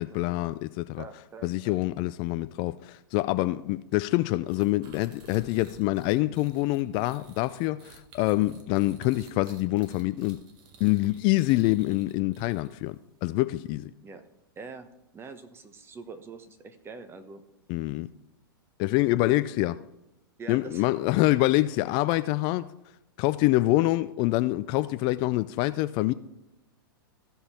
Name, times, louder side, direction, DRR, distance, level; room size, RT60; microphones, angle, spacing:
voice 1, 0.0-1.0 1.4-10.4 10.8-13.9 17.7-18.1 18.8-19.7 20.5-22.7 23.2-26.1, left 18 dB, 40° left, 0.4 m, -26 dB
voice 2, 1.0-1.8 14.0-14.2 14.6-14.9 15.1-17.4 19.2-19.3 20.4-20.9, right 4 dB, 20° right, 1.1 m, -44 dB
sound 1, 4.5-13.0, right 5 dB, 40° right, 1.7 m, -54 dB
15.0 x 5.4 x 4.3 m
hypercardioid pair, 110°, 12 cm